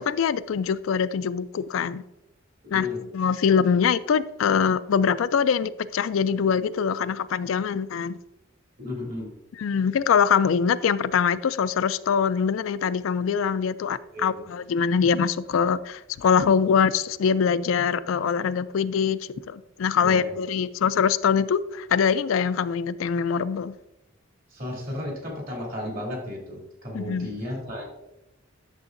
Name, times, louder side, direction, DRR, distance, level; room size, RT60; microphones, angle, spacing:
voice 1, 0.0-2.0 2.7-2.9 3.1-8.2 9.6-19.2 19.5-23.7 26.9-27.3, left 6 dB, 80° left, 0.4 m, -23 dB
voice 2, 2.6-3.0 8.8-9.3 14.1-14.4 20.0-20.3 24.5-27.9, left 1 dB, 45° right, 2.9 m, -34 dB
11.0 x 7.0 x 2.6 m
head